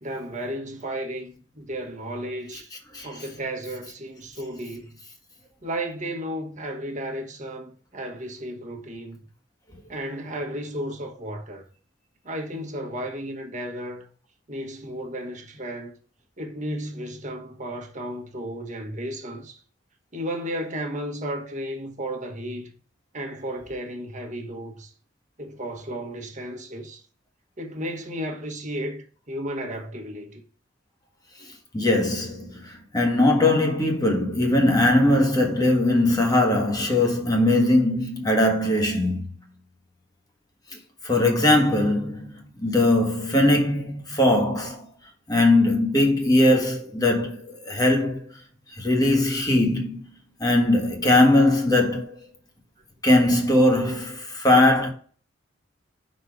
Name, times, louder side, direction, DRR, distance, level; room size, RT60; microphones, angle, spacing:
voice 1, 0.0-2.7 3.0-5.0 5.6-9.2 9.9-11.6 12.2-14.1 14.5-15.9 16.4-19.6 20.1-22.7 23.1-24.9 25.4-27.0 27.6-30.4, right 1 dB, 40° right, 1.3 m, -33 dB
voice 2, 31.7-39.3 41.0-44.9 45.3-48.3 48.8-50.1 50.4-52.1 53.0-54.9, left 1 dB, 20° left, 1.4 m, -20 dB
5.5 x 4.1 x 4.9 m
head